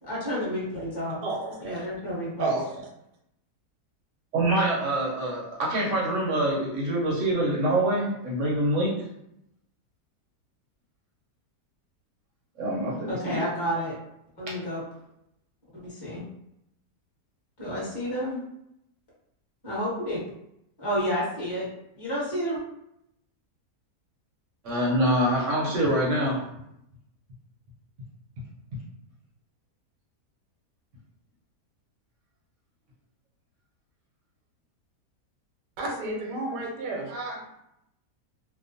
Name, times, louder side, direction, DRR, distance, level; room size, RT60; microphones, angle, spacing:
voice 1, 0.0-1.2 1.6-2.5 13.1-14.0 14.4-14.8 15.7-16.2 17.6-18.4 19.6-20.2 20.8-21.7 22.0-22.6, equal, 15° left, -8 dB, 1.0 m, -30 dB
voice 2, 1.2-1.9 2.4-2.9 35.8-37.6, right 2 dB, 85° right, 0 dB, 1.2 m, -32 dB
voice 3, 4.3-8.9 12.6-13.4 24.6-26.5, right 1 dB, 60° right, -4 dB, 0.9 m, -25 dB
2.8 x 2.1 x 2.6 m, 0.79 s
omnidirectional pair, 1.8 m